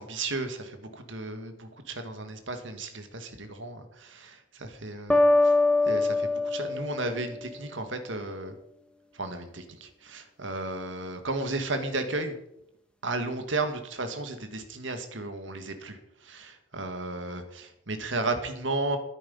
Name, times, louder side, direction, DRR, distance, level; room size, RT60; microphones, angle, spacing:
voice 1, 0.0-5.5 5.9-8.6 9.1-12.4 13.0-19.0, right 2 dB, 70° right, 8 dB, 1.8 m, -34 dB
sound 1, 5.1-7.9, left 2 dB, 5° left, 1.0 m, -24 dB
13.0 x 10.0 x 5.5 m, 0.82 s
head